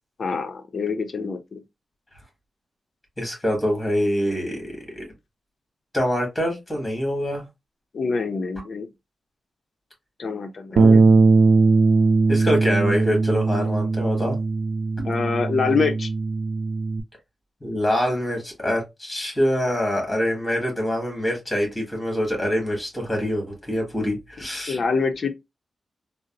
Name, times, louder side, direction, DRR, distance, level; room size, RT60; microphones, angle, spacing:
voice 1, 0.2-1.6 7.9-8.9 10.2-11.0 15.0-16.1 24.7-25.3, left 4 dB, 60° left, 0.6 m, -25 dB
voice 2, 3.2-5.0 5.9-7.4 10.7-11.2 12.3-14.4 17.6-24.8, equal, 15° left, 1.9 m, -25 dB
Bass guitar, 10.8-17.0, right 3 dB, 70° right, 0.3 m, -19 dB
3.9 x 2.0 x 2.5 m
cardioid pair, 75°, 0 cm